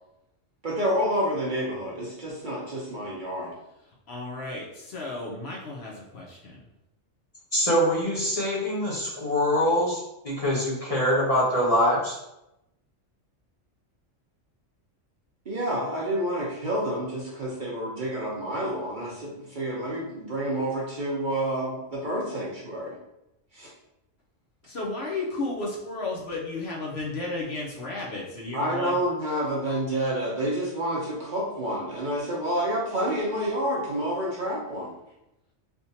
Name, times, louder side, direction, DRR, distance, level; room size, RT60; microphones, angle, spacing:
voice 1, 0.6-3.5 15.5-22.9 23.5-23.7 28.5-34.9, right 1 dB, 45° right, -5 dB, 0.8 m, -29 dB
voice 2, 4.1-6.6 24.6-29.0, left 2 dB, 60° left, -4 dB, 0.9 m, -33 dB
voice 3, 7.5-10.0 10.2-12.2, equal, 30° left, -6 dB, 0.8 m, -24 dB
3.5 x 2.8 x 2.7 m, 0.88 s
omnidirectional pair, 1.4 m